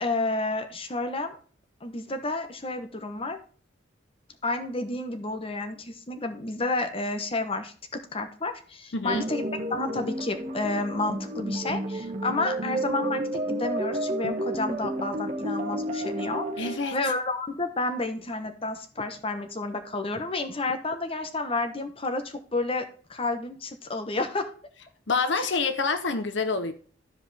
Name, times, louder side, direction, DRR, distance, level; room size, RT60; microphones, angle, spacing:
voice 1, 0.0-1.4 1.8-3.4 4.4-22.8 23.1-24.5 25.4-25.5, left 2 dB, 30° left, 1.1 m, -30 dB
voice 2, 8.9-9.2 16.6-17.0 25.1-26.7, left 4 dB, 75° left, 0.8 m, -27 dB
sound 1, 9.1-16.8, right 1 dB, 40° right, 1.3 m, -31 dB
13.0 x 5.1 x 3.4 m
head